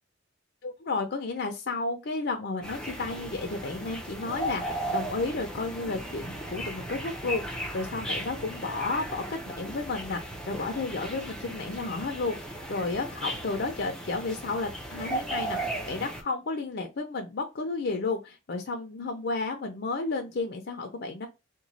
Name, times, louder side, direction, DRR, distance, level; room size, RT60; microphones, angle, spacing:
voice 1, 0.6-21.3, left 3 dB, 55° left, 0.6 m, -32 dB
sound 1, 2.6-16.2, right 1 dB, 5° left, 0.6 m, -36 dB
3.0 x 2.2 x 3.9 m
head